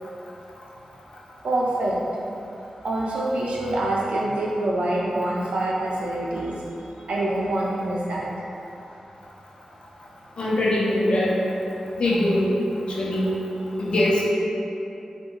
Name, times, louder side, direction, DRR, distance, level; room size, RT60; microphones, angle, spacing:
voice 1, 1.4-2.0 2.8-6.6 7.1-8.4, right 1 dB, 85° right, -5 dB, 0.5 m, -25 dB
voice 2, 10.4-11.4 12.0-12.5 13.0-13.3 13.8-14.2, left 1 dB, 50° left, -5 dB, 0.5 m, -22 dB
3.5 x 2.2 x 2.9 m, 2.8 s
wide cardioid pair, 155°, 2 cm